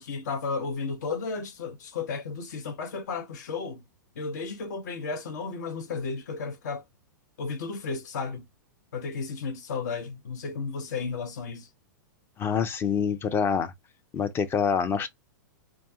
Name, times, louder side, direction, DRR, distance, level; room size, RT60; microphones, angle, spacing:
voice 1, 0.0-3.8 4.2-6.8 7.4-8.4 8.9-11.7, left 4 dB, 60° left, 0.7 m, -33 dB
voice 2, 12.4-13.7 14.1-15.1, left 6 dB, 20° left, 0.5 m, -26 dB
2.4 x 2.2 x 2.6 m
figure-of-eight pair, 100°, 11 cm